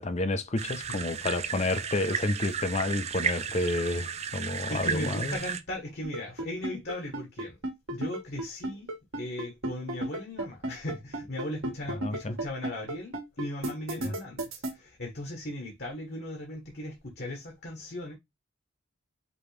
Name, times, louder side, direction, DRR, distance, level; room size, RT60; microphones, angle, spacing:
voice 1, 0.0-5.4 12.0-12.3 14.1-14.2, left 2 dB, 30° left, 0.6 m, -30 dB
sound 1, 0.6-5.6, right 6 dB, 30° right, 0.4 m, -34 dB
voice 2, 4.7-7.6 7.9-8.9 9.2-18.1, left 1 dB, 50° left, 1.3 m, -37 dB
sound 2, 6.0-14.7, right 1 dB, 70° right, 1.6 m, -33 dB
5.2 x 3.0 x 3.3 m
head